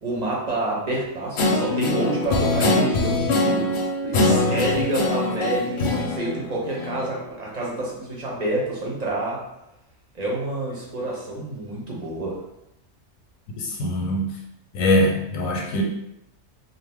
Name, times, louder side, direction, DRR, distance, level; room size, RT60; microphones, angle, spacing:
voice 1, 0.0-3.7 4.0-9.4 10.1-12.4, right 2 dB, 40° right, -4 dB, 0.6 m, -28 dB
Guitar, 1.4-7.2, left 2 dB, 65° left, 0.8 m, -23 dB
voice 2, 13.6-14.3 14.7-15.8, left 1 dB, 90° left, 0 dB, 1.1 m, -22 dB
2.6 x 2.2 x 3.4 m, 0.85 s
omnidirectional pair, 1.4 m